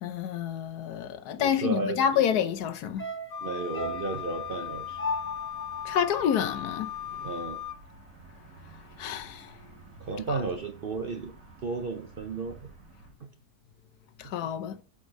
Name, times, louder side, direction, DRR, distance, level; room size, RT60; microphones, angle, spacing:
voice 1, 0.0-3.1 5.8-6.9 9.0-9.6 14.2-14.8, left 9 dB, 80° left, 1.3 m, -28 dB
voice 2, 1.4-2.3 3.4-5.0 7.2-7.6 10.0-11.3 11.6-12.7 13.2-13.3 14.2-14.3, right 4 dB, 50° right, 0.7 m, -33 dB
sound 1, 3.0-7.4 7.7-7.8, left 1 dB, 15° left, 0.5 m, -38 dB
Wind instrument woodwind instrument, 3.3-7.8, left 10 dB, 60° left, 0.8 m, -38 dB
sound 2, 3.7-13.1, right 3 dB, 90° right, 3.2 m, -52 dB
7.2 x 4.4 x 6.3 m
omnidirectional pair, 1.7 m